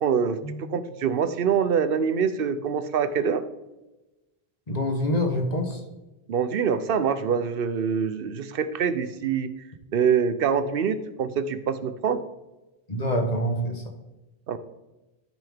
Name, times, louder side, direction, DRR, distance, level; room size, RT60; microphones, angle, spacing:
voice 1, 0.0-3.4 6.3-9.5 9.9-12.2 14.5-14.6, right 7 dB, 65° right, 12 dB, 0.9 m, -25 dB
voice 2, 4.7-5.8 12.9-13.8, equal, 40° left, 3 dB, 1.4 m, -26 dB
13.5 x 5.7 x 3.5 m, 1.0 s
omnidirectional pair, 1.1 m